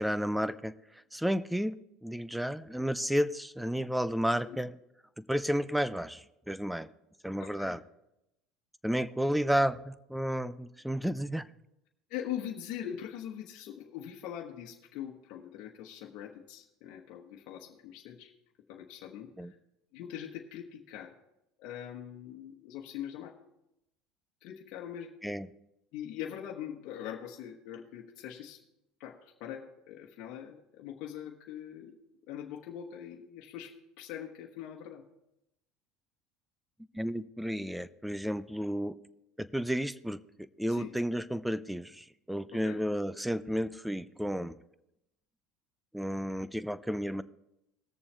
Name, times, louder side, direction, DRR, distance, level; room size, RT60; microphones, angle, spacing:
voice 1, 0.0-4.7 5.2-6.9 7.2-7.8 8.8-11.4 19.4-19.5 25.2-25.4 36.9-39.0 39.4-40.2 40.6-44.6 45.9-47.2, equal, 5° right, 17 dB, 0.5 m, -32 dB
voice 2, 7.4-7.8 12.1-18.3 18.7-19.5 19.9-21.1 21.6-23.3 24.4-25.1 25.9-28.6 29.0-32.0 32.3-35.0 40.7-40.9 42.5-42.8, left 10 dB, 65° left, -1 dB, 1.3 m, -42 dB
19.0 x 7.0 x 3.4 m, 0.86 s
supercardioid pair, 95°, 0 cm